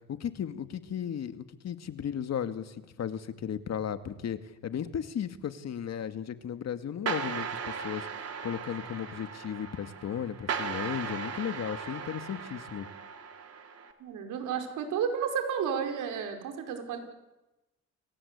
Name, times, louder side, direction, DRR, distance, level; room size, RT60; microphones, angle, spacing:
voice 1, 0.1-12.9, left 8 dB, 60° left, 10 dB, 2.1 m, -35 dB
sound 1, 7.1-13.9, right 6 dB, 55° right, 3.8 m, -37 dB
voice 2, 14.0-17.0, right 7 dB, 90° right, 5 dB, 5.0 m, -32 dB
29.5 x 24.0 x 8.3 m, 1.0 s
cardioid pair, 90°, 30 cm